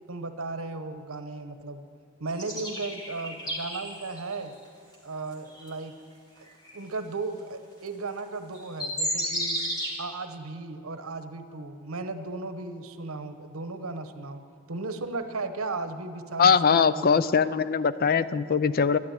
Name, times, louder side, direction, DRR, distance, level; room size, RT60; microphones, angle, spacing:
voice 1, 0.1-1.8 2.2-4.5 5.0-6.0 6.7-9.6 10.0-14.4 14.7-17.3, right 3 dB, 80° right, 9 dB, 1.0 m, -35 dB
sound 1, 2.4-4.3 4.9-5.0 5.5-5.7 6.6-6.8 8.2-8.3 8.5-10.0, equal, 20° left, 2.5 m, -32 dB
voice 2, 16.4-19.0, left 6 dB, 45° left, 15 dB, 0.4 m, -21 dB
12.5 x 12.0 x 8.9 m, 2.3 s
head